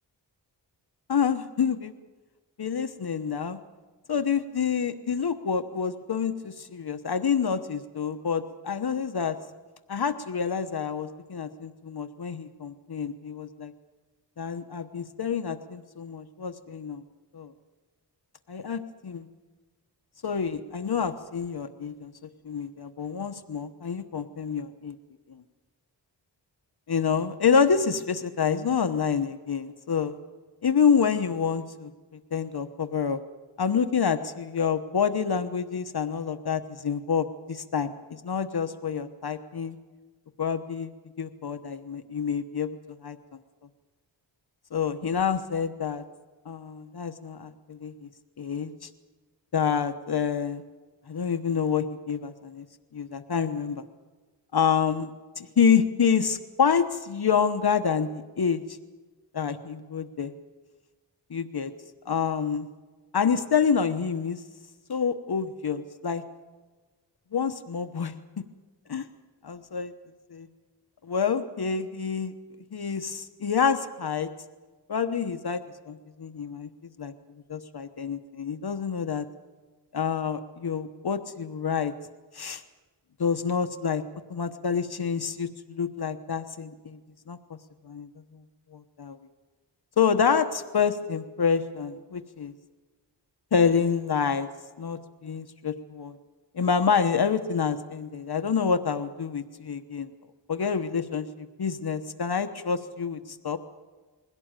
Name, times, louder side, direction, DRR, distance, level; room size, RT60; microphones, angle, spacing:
voice 1, 1.1-1.9 2.6-3.6 4.1-9.4 9.9-13.7 14.4-17.0 17.3-17.5 18.5-19.3 20.2-22.1 22.4-24.9 26.9-30.2 30.6-33.2 33.6-39.8 40.4-40.9 41.2-43.2 44.7-46.0 46.4-48.1 48.4-48.9 49.5-50.6 51.1-52.6 52.9-53.8 54.5-55.1 55.4-58.6 59.3-60.3 61.3-61.7 62.0-62.7 63.1-64.4 64.9-66.2 67.3-68.4 68.9-69.1 69.4-69.9 70.3-70.5 71.0-72.3 72.7-74.3 74.9-77.1 77.5-79.3 79.9-81.9 82.3-82.6 83.2-84.0 84.3-87.0 87.3-87.4 87.8-88.1 88.7-89.2 90.0-92.5 93.5-94.5 94.8-96.2 96.5-100.1 100.5-103.6, left 6 dB, 60° left, 9 dB, 1.1 m, -27 dB
21.5 x 17.0 x 9.0 m, 1.3 s
wide cardioid pair, 100°, 43 cm